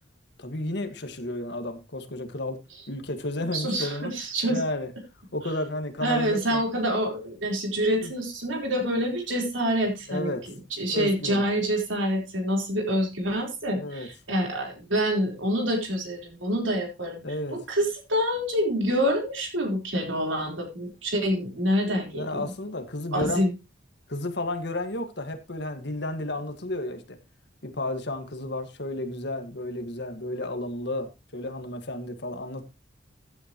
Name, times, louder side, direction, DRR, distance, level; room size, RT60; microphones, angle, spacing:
voice 1, 0.4-2.6 2.9-4.1 4.5-4.9 5.3-6.6 8.0-8.1 10.1-10.4 10.9-11.4 13.7-14.1 17.2-17.6 22.1-23.4 24.1-27.2 27.6-32.6, left 1 dB, 55° left, 1.8 m, -32 dB
voice 2, 3.5-4.6 6.0-10.3 10.7-17.2 17.5-22.5 23.1-23.5, equal, 70° right, 4.2 m, -26 dB
15.0 x 10.0 x 3.1 m
head